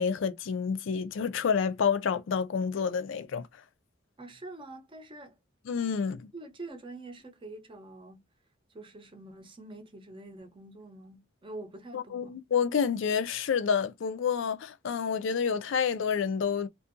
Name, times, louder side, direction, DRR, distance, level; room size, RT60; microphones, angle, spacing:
voice 1, 0.0-3.5 5.7-6.3 11.9-16.7, left 6 dB, 70° left, 0.4 m, -29 dB
voice 2, 4.2-5.4 6.3-8.2 8.7-12.4, right 2 dB, 25° right, 0.6 m, -45 dB
2.6 x 2.4 x 2.5 m
head